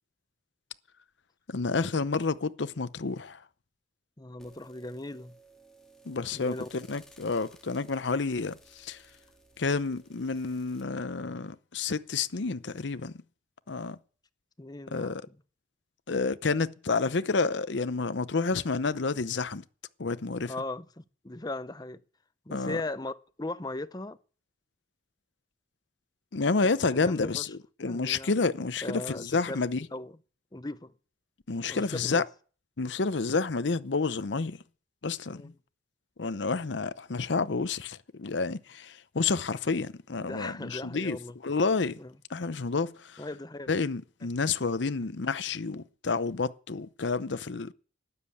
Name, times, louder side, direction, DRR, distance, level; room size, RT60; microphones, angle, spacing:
voice 1, 1.5-3.4 6.1-9.0 9.6-13.1 13.7-14.0 14.9-15.2 16.1-19.6 20.0-20.5 22.5-22.8 26.3-29.9 31.5-32.2 32.8-34.6 35.0-35.5 36.2-41.2 41.4-42.0 42.3-43.2 43.7-47.7, left 4 dB, 70° left, 0.7 m, -29 dB
voice 2, 4.2-5.3 6.3-6.7 14.6-15.4 20.4-22.0 22.5-24.2 26.6-27.4 27.8-28.3 28.8-29.6 29.9-30.1 30.5-30.9 31.7-32.2 35.3-35.5 40.2-41.4 42.0-42.1 43.2-43.7, left 2 dB, 20° left, 0.8 m, -38 dB
sound 1, 4.4-10.8, right 2 dB, 5° left, 2.5 m, -58 dB
12.5 x 9.7 x 8.5 m
head